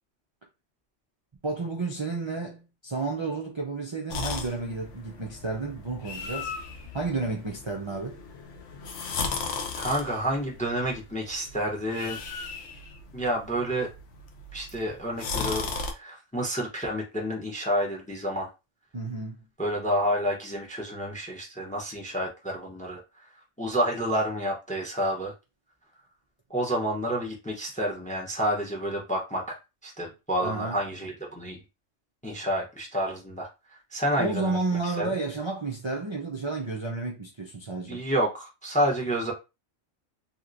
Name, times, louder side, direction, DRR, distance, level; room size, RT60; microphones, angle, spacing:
voice 1, 1.4-6.5 6.9-8.2 18.9-19.5 30.4-30.8 34.2-38.0, right 3 dB, 50° right, 0.3 m, -31 dB
sound 1, 4.1-15.9, left 4 dB, 75° left, 1.0 m, -36 dB
voice 2, 9.8-12.2 13.1-13.9 14.5-18.5 19.6-23.3 23.6-25.3 26.5-31.6 32.2-33.5 33.9-34.6 34.8-35.1 37.9-39.3, equal, 10° left, 0.5 m, -29 dB
2.9 x 2.9 x 2.5 m
omnidirectional pair, 1.3 m